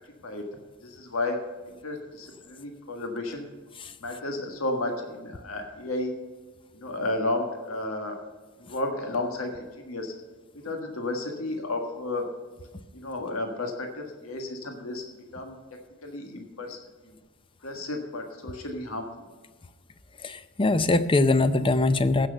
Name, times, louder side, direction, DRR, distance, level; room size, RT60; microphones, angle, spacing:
voice 1, 0.8-1.4 1.7-3.4 4.0-6.1 6.7-8.1 8.6-10.1 10.6-12.2 12.9-15.0 15.3-15.5 16.0-16.8 17.6-19.1, left 2 dB, 90° left, 3 dB, 1.6 m, -32 dB
voice 2, 20.2-22.3, left 2 dB, 25° left, 12 dB, 0.6 m, -22 dB
15.5 x 6.1 x 6.7 m, 1.4 s
head